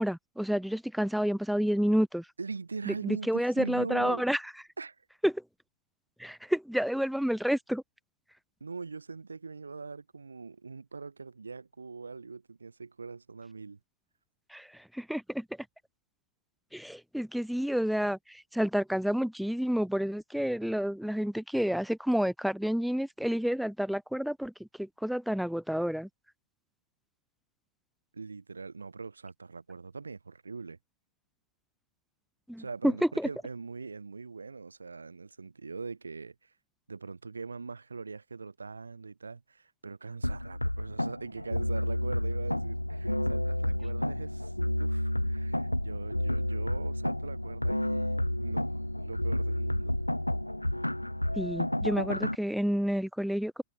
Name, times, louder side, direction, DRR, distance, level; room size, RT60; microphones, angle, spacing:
voice 1, 0.0-2.2 2.9-4.4 5.2-5.4 6.2-7.8 14.5-14.7 14.9-15.4 16.7-24.5 24.8-26.1 32.5-33.3 51.4-53.6, equal, ahead, 1.1 m, -29 dB
voice 2, 2.4-4.2 4.8-5.0 8.6-13.8 28.1-30.8 32.6-36.5 36.9-44.5 44.8-50.0, right 4 dB, 75° right, 7.6 m, -42 dB
sound 1, 40.2-52.4, left 1 dB, 85° left, 0.5 m, -30 dB
figure-of-eight pair, 90°, 0 cm